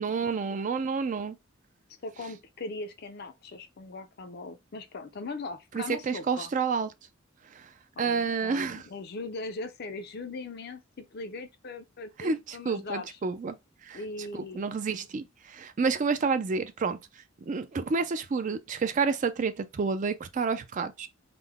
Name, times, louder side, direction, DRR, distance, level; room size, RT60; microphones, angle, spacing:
voice 1, 0.0-1.4 5.7-6.9 7.5-7.7 8.0-8.9 12.2-13.6 13.8-14.0 14.3-21.1, right 5 dB, 40° right, 0.4 m, -29 dB
voice 2, 2.0-6.5 8.0-13.2 13.9-14.7, left 3 dB, 50° left, 0.5 m, -40 dB
3.7 x 2.1 x 3.4 m
head